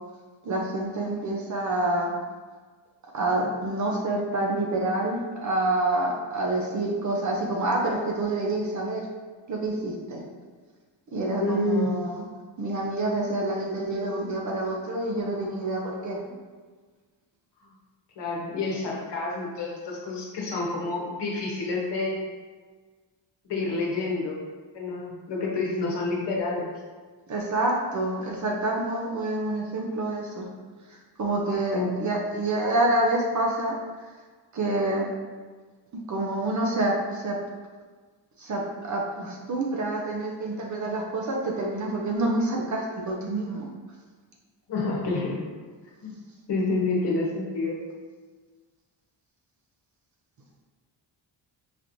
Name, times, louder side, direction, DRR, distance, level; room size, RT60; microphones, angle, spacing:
voice 1, 0.4-2.1 3.1-9.0 9.5-10.2 11.1-12.2 12.6-16.2 27.3-30.5 30.9-33.7 34.5-35.1 36.1-37.4 38.4-43.7, right 2 dB, 40° right, -1 dB, 0.5 m, -27 dB
voice 2, 11.4-11.9 16.2-16.3 18.2-22.2 23.4-24.4 24.7-26.7 31.7-32.0 44.7-45.4 46.0-46.1 46.5-47.8, left 3 dB, 65° left, -3 dB, 1.0 m, -28 dB
4.9 x 3.0 x 2.6 m, 1.4 s
wide cardioid pair, 175°, 46 cm